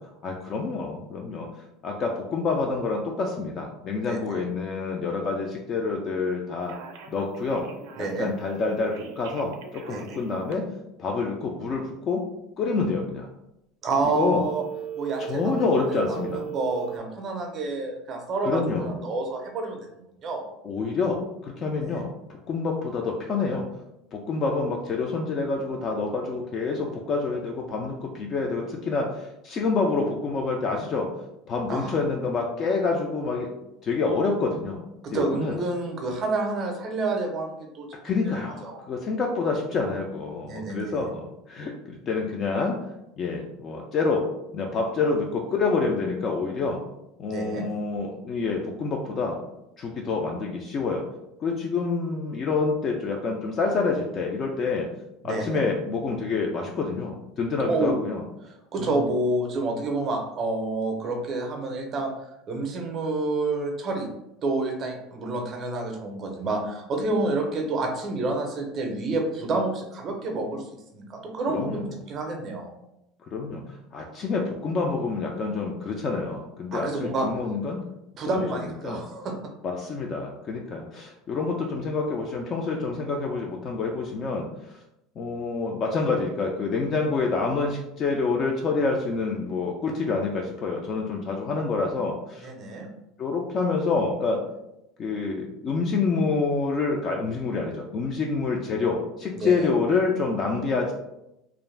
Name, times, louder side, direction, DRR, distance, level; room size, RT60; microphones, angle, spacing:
voice 1, 0.2-1.5 1.8-6.8 7.1-7.6 8.2-10.6 11.0-12.2 12.6-13.3 14.1-14.5 15.3-16.4 18.4-19.0 20.6-22.1 22.5-23.6 24.1-31.1 31.5-33.5 33.8-34.8 35.1-35.6 38.0-42.8 43.2-44.2 44.5-46.8 47.2-49.4 49.8-51.0 51.4-54.9 55.2-58.2 58.8-59.1 71.5-71.8 73.3-73.6 73.9-77.8 78.2-79.0 79.6-84.5 85.2-92.5 93.2-94.4 95.0-100.9, left 4 dB, 30° left, 0 dB, 0.3 m, -27 dB
voice 2, 4.0-4.4 8.0-8.3 9.9-10.2 13.8-14.6 14.9-15.4 15.9-19.8 20.2-20.5 21.8-22.1 31.7-32.0 35.0-38.3 38.6-38.8 40.4-41.0 47.3-47.7 55.2-55.6 57.7-57.9 58.4-62.1 62.5-64.1 64.4-72.7 76.7-77.3 78.2-79.3 92.4-92.9 99.4-99.7, right 2 dB, 30° right, 2 dB, 0.5 m, -29 dB
Telephone, 6.6-8.3 8.9-10.5 14.1-17.0, right 9 dB, 85° right, 0.4 m, -37 dB
2.4 x 2.1 x 3.2 m, 0.86 s
cardioid pair, 155°, 0 cm